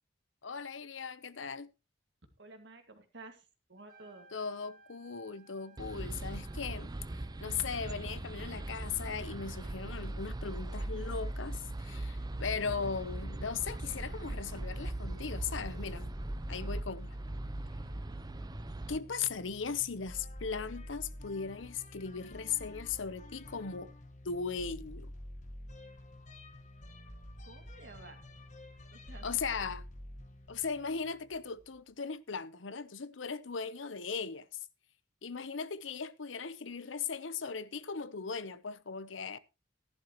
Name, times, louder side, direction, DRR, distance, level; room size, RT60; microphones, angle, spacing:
voice 1, 0.4-1.7 4.3-6.9 7.4-16.1 16.5-17.2 18.9-23.9 24.2-25.1 29.2-29.8 30.5-34.7 35.2-39.4, left 5 dB, 85° left, 0.9 m, -38 dB
voice 2, 2.4-4.3 27.4-28.2 28.9-29.4, right 2 dB, 65° right, 2.2 m, -52 dB
Trumpet, 3.8-9.6, right 4 dB, 50° right, 3.4 m, -62 dB
sound 1, 5.8-19.0, right 1 dB, 20° right, 0.5 m, -39 dB
sound 2, 14.5-31.8, left 1 dB, 40° left, 1.5 m, -49 dB
15.0 x 11.0 x 3.1 m
head